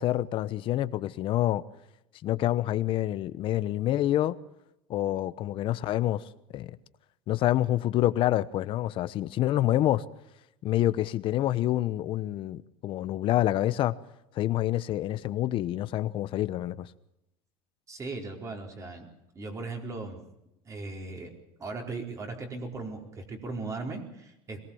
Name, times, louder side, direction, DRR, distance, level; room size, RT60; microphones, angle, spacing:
voice 1, 0.0-1.6 2.2-4.4 4.9-6.2 6.5-6.7 7.3-10.0 10.6-13.9 14.4-16.9, left 14 dB, 50° left, 1.0 m, -27 dB
voice 2, 17.9-19.1 19.3-20.2 20.7-21.3 21.6-24.6, right 3 dB, 25° right, 4.4 m, -38 dB
22.5 x 18.5 x 7.2 m
supercardioid pair, 125°, 12 cm